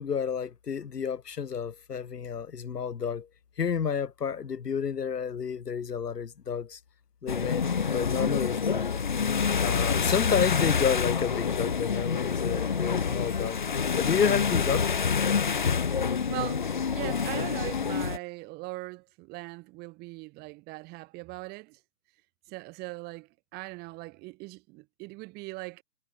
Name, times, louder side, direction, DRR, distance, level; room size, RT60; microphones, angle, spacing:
voice 1, 0.0-3.3 3.6-6.8 7.2-8.9 9.6-13.6 13.9-15.2, left 7 dB, 70° left, 1.2 m, -30 dB
sound 1, 7.3-18.2, left 6 dB, 30° left, 0.6 m, -27 dB
voice 2, 16.3-21.8 22.5-25.8, right 23 dB, 20° right, 4.5 m, -40 dB
figure-of-eight pair, 140°, 49 cm